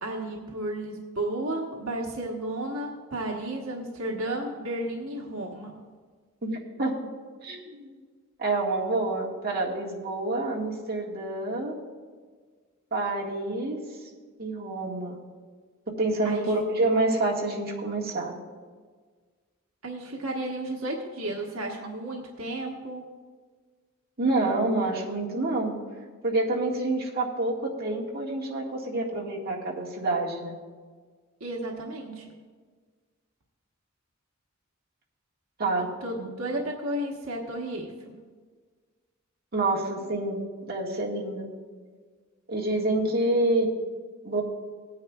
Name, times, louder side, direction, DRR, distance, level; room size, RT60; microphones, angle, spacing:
voice 1, 0.0-5.8 16.2-16.4 19.8-23.1 31.4-32.3 36.0-38.2, right 1 dB, 85° right, -1 dB, 1.2 m, -33 dB
voice 2, 6.4-6.9 7.4-8.0 8.4-11.8 12.9-13.8 14.4-15.2 16.0-18.3 24.2-25.8 26.2-30.6 35.6-35.9 36.2-36.3 39.5-40.4 40.7-41.5 42.5-43.7 44.2-44.4, right 2 dB, 50° right, -4 dB, 1.8 m, -27 dB
18.5 x 9.5 x 2.4 m, 1.5 s
head